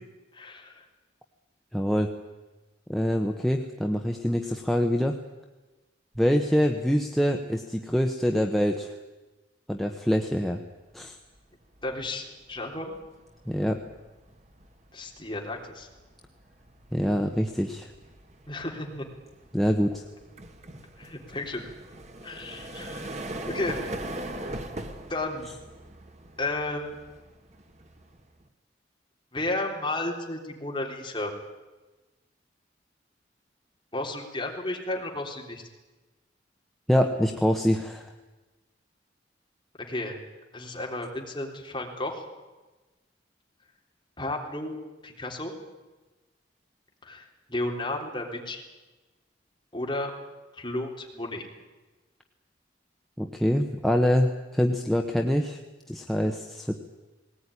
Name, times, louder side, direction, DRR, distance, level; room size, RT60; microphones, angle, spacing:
voice 1, 0.3-0.8 11.8-13.0 14.9-15.9 18.5-19.1 21.0-21.6 22.2-23.1 23.5-23.8 25.1-25.5 26.4-27.0 29.3-31.3 33.9-35.6 39.9-40.2 40.5-42.2 44.2-44.8 45.0-45.5 47.0-48.6 49.7-50.1 50.5-51.5, left 2 dB, 25° left, 0 dB, 3.7 m, -33 dB
voice 2, 1.7-2.1 2.9-5.1 6.2-8.9 9.7-10.6 10.9-11.2 13.5-13.8 16.9-17.9 19.5-20.0 36.9-38.1 53.2-55.6 55.9-56.7, equal, ahead, 2 dB, 1.0 m, -25 dB
sound 1, 11.1-11.4 11.7-28.5, right 1 dB, 35° right, 1.6 m, -41 dB
19.5 x 19.0 x 9.9 m, 1.2 s
head